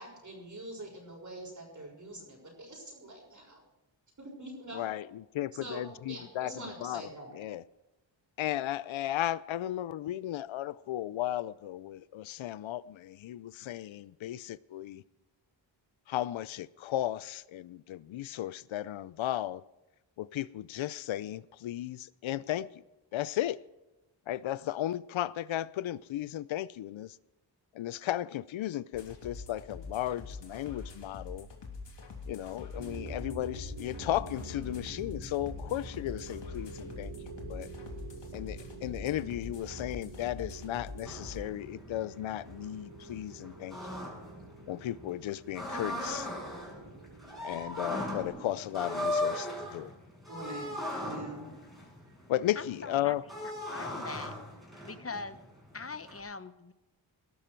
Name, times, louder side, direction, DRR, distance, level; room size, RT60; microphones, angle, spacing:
voice 1, 0.0-3.6 4.2-4.9 5.6-7.3 50.3-51.5, right 1 dB, 40° right, 6.3 m, -44 dB
voice 2, 4.7-7.0 7.3-7.6 8.4-15.0 16.1-19.6 20.2-22.8 23.1-23.6 24.3-27.2 27.7-31.5 32.3-37.7 38.3-43.8 44.7-46.3 47.4-49.9 52.3-53.2, left 13 dB, 85° left, 0.6 m, -35 dB
sound 1, 28.9-41.4, left 4 dB, 65° left, 3.4 m, -45 dB
sound 2, 32.8-48.3, right 2 dB, 65° right, 5.2 m, -47 dB
sound 3, 41.1-56.2, left 1 dB, ahead, 7.0 m, -39 dB
voice 3, 52.6-53.1 53.7-54.3 54.8-55.4 55.7-56.7, left 4 dB, 30° left, 1.0 m, -41 dB
20.5 x 12.0 x 4.6 m
wide cardioid pair, 90°, 46 cm